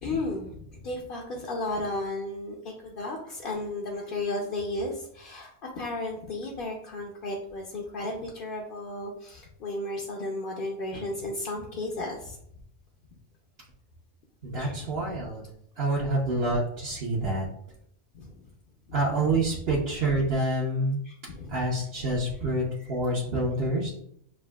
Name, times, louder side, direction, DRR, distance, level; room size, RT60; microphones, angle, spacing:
voice 1, 0.0-0.6 0.8-12.4 14.6-15.1 18.1-18.3 18.9-19.0 21.0-21.9 22.7-23.0 23.6-23.9, left 2 dB, 55° left, 0 dB, 0.7 m, -34 dB
voice 2, 14.4-15.4 15.8-17.5 18.9-21.0 21.5-23.9, right 2 dB, 55° right, -5 dB, 1.1 m, -27 dB
7.3 x 2.6 x 2.3 m, 0.70 s
omnidirectional pair, 1.3 m